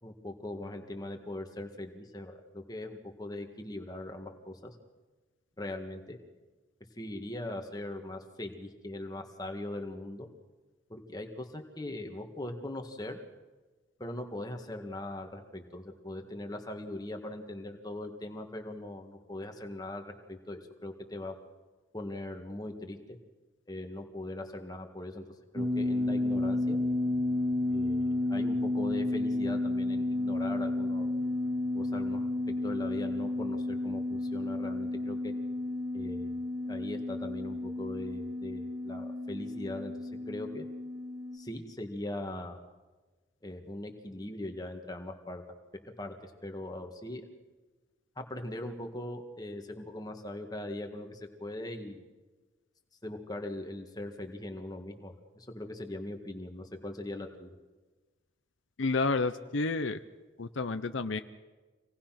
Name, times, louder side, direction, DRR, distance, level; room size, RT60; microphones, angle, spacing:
voice 1, 0.0-4.8 5.6-6.2 7.0-10.3 10.9-13.2 14.0-21.4 21.9-23.2 23.7-25.2 25.5-26.8 27.7-31.3 31.7-35.3 35.9-36.4 36.6-40.7 41.3-42.6 43.4-45.4 46.0-47.3 48.2-52.0 53.0-57.6, left 1 dB, 20° left, 4 dB, 1.8 m, -40 dB
sound 1, 25.6-41.4, left 2 dB, 20° right, 2.0 m, -32 dB
voice 2, 58.8-60.0 60.4-61.2, left 3 dB, 80° left, 10 dB, 0.8 m, -30 dB
26.0 x 18.5 x 6.0 m, 1.3 s
head